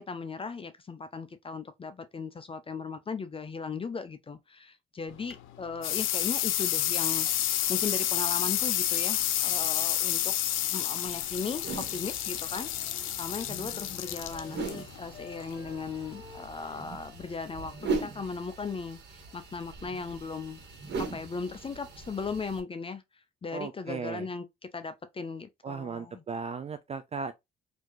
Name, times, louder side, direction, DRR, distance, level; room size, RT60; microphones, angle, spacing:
voice 1, 0.0-10.3 10.7-20.6 21.0-23.0 23.4-24.4 24.7-26.2, left 4 dB, 25° left, 0.5 m, -37 dB
sound 1, 5.1-16.4, left 12 dB, 90° left, 0.5 m, -30 dB
sound 2, 11.0-22.6, right 4 dB, 60° right, 1.5 m, -40 dB
Wind instrument woodwind instrument, 12.3-14.9 15.1-17.9, left 4 dB, 55° left, 1.2 m, -52 dB
voice 2, 23.5-24.3 25.6-27.3, right 5 dB, 30° right, 0.4 m, -36 dB
4.3 x 2.6 x 3.0 m
cardioid pair, 90°, 20 cm